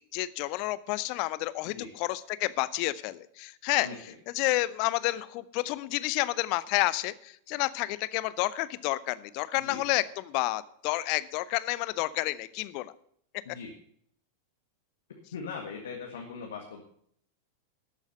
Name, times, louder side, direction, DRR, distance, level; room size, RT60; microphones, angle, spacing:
voice 1, 0.0-3.9 4.3-12.9, left 18 dB, 45° left, 17 dB, 0.7 m, -30 dB
voice 2, 3.8-4.2 9.6-9.8 13.5-13.7 15.3-16.8, left 5 dB, 65° left, 2 dB, 1.9 m, -40 dB
13.0 x 8.3 x 6.7 m, 0.65 s
figure-of-eight pair, 90°, 0 cm